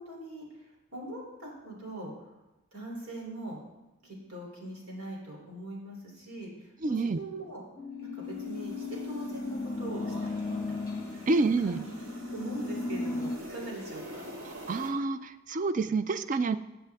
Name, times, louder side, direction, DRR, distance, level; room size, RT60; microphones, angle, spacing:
voice 1, 0.0-2.3 2.7-3.6 4.0-7.6 8.0-10.8 11.1-11.3 11.6-11.8 12.3-14.2, right 1 dB, 85° right, -2 dB, 3.3 m, -41 dB
voice 2, 6.8-7.2 11.3-11.8 14.7-16.6, right 3 dB, 35° right, 13 dB, 0.4 m, -28 dB
sound 1, 7.8-13.4, left 3 dB, 15° left, 1.2 m, -36 dB
sound 2, 8.2-14.9, equal, 65° right, 1.8 m, -46 dB
14.5 x 7.5 x 3.5 m, 1.0 s
head